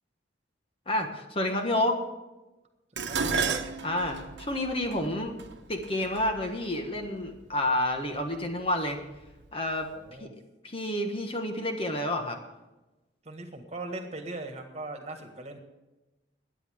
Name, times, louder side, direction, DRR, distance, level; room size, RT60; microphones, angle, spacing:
voice 1, 0.9-2.0 3.8-5.3 5.7-9.0 9.5-9.9 10.2-10.3 10.6-12.4, left 1 dB, 30° left, 4 dB, 1.4 m, -29 dB
voice 2, 3.0-3.6 9.9-10.3 13.2-15.6, right 2 dB, 35° right, 5 dB, 1.7 m, -39 dB
Dishes pots and pans, 3.0-7.3 8.2-8.6 9.0-9.8 10.1-10.2, right 5 dB, 75° right, 1.1 m, -34 dB
22.0 x 9.6 x 3.7 m, 1.1 s
head